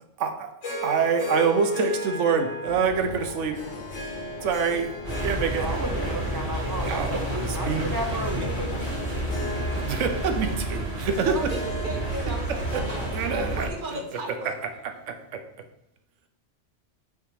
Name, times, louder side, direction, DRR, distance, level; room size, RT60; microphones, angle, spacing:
voice 1, 0.2-0.5 0.8-3.6 4.4-4.9 5.2-5.7 6.8-7.9 8.3-8.5 9.8-11.5 12.7-12.8 13.1-14.0 14.4-14.5, right 6 dB, 85° right, 7 dB, 1.1 m, -26 dB
Harp, 0.6-15.0, equal, 90° left, 1.8 m, -37 dB
sound 1, 2.7-9.9, left 2 dB, 50° left, 0.9 m, -42 dB
sound 2, 5.0-13.7, right 1 dB, 15° right, 2.3 m, -30 dB
voice 2, 5.6-8.8, right 1 dB, 30° right, 3 dB, 0.4 m, -33 dB
voice 3, 11.2-14.5, right 2 dB, 45° right, 3 dB, 1.1 m, -35 dB
5.8 x 3.5 x 4.8 m, 0.83 s
omnidirectional pair, 1.2 m